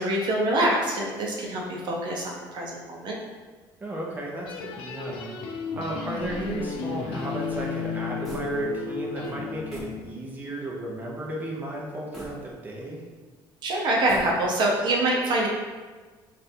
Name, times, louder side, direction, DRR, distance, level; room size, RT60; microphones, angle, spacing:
voice 1, 0.0-3.2 13.6-15.5, right 1 dB, 55° right, -2 dB, 0.8 m, -25 dB
voice 2, 3.8-5.3 5.8-13.0, right 1 dB, 20° right, -3 dB, 0.8 m, -34 dB
sound 1, 4.4-10.1, left 5 dB, 70° left, 0.5 m, -33 dB
sound 2, 6.1-9.0 9.2-9.4 9.7-10.0 10.5-10.6 12.1-13.1 13.9-14.8, equal, ahead, 1.3 m, -43 dB
3.3 x 2.6 x 4.3 m, 1.4 s
cardioid pair, 105°, 9 cm